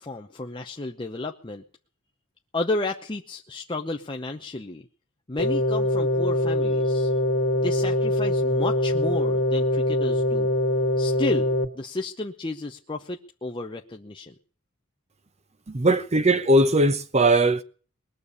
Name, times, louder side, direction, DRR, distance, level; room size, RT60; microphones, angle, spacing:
voice 1, 0.0-1.6 2.5-4.8 5.3-7.1 7.6-10.5 11.0-11.5 11.7-14.3, left 2 dB, 20° left, 0.8 m, -32 dB
sound 1, 5.4-11.7, left 1 dB, 75° left, 2.1 m, -23 dB
voice 2, 15.7-17.6, right 1 dB, 30° right, 0.9 m, -19 dB
20.5 x 6.9 x 9.7 m
head